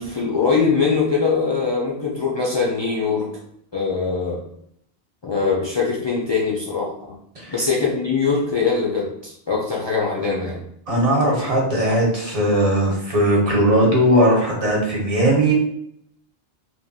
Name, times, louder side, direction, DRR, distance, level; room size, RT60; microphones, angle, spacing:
voice 1, 0.0-3.3 3.7-4.4 5.2-7.1 7.5-10.6, left 4 dB, 45° left, -4 dB, 0.3 m, -22 dB
voice 2, 7.3-7.6 10.9-15.5, right 1 dB, 40° right, -3 dB, 0.9 m, -18 dB
3.0 x 2.3 x 2.6 m, 0.70 s
omnidirectional pair, 1.0 m